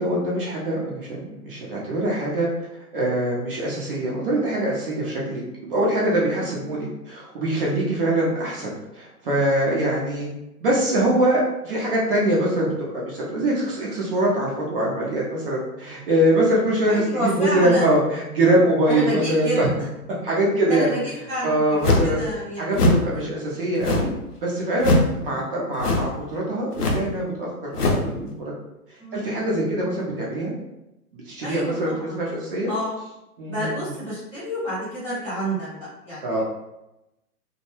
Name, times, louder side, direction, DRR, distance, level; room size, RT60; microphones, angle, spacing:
voice 1, 0.0-2.5 2.9-10.3 10.6-19.7 20.2-20.9 21.4-22.2 22.6-24.1 24.4-28.5 29.1-30.5 31.1-32.7 33.4-33.8 36.2-36.4, right 1 dB, 40° right, -4 dB, 0.6 m, -23 dB
voice 2, 6.4-6.7 8.0-8.1 16.9-17.9 18.9-19.7 20.7-22.7 25.3-25.5 29.0-29.3 29.8-30.0 31.4-32.3 32.7-33.0 33.5-36.4, equal, 5° left, -14 dB, 0.6 m, -29 dB
sound 1, 21.8-22.2 22.7-23.1 23.8-24.2 24.8-25.1 25.8-26.2 26.7-27.1 27.7-28.1, left 2 dB, 85° left, 0.7 m, -21 dB
2.2 x 2.1 x 3.0 m, 0.94 s
hypercardioid pair, 130°, 46 cm